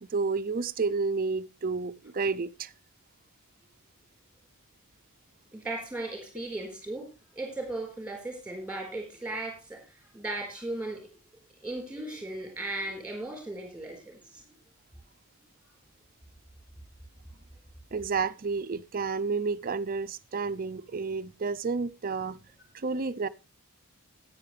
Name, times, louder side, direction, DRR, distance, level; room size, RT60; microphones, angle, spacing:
voice 1, 0.0-2.7 17.9-22.4 22.7-23.3, right 4 dB, 40° right, 0.5 m, -30 dB
voice 2, 5.5-7.1 7.3-9.9 10.1-11.1 11.6-14.4, right 2 dB, 5° right, 4.1 m, -36 dB
13.5 x 9.3 x 3.2 m
head